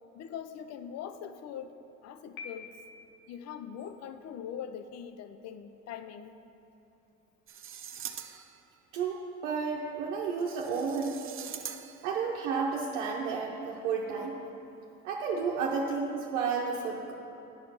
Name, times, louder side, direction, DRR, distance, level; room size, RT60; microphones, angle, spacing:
voice 1, 0.1-1.8 2.0-2.7 3.3-6.4 11.6-11.7, left 8 dB, 45° left, 10 dB, 0.5 m, -42 dB
Piano, 2.4-3.3, left 5 dB, 80° left, 0.9 m, -46 dB
sound 1, 7.5-8.7 10.4-12.2, right 9 dB, 35° right, 0.6 m, -43 dB
voice 2, 8.9-11.2 12.0-14.5 15.0-17.1, right 5 dB, 85° right, -2 dB, 0.8 m, -32 dB
9.7 x 5.0 x 5.6 m, 2.9 s
hypercardioid pair, 65°, 35 cm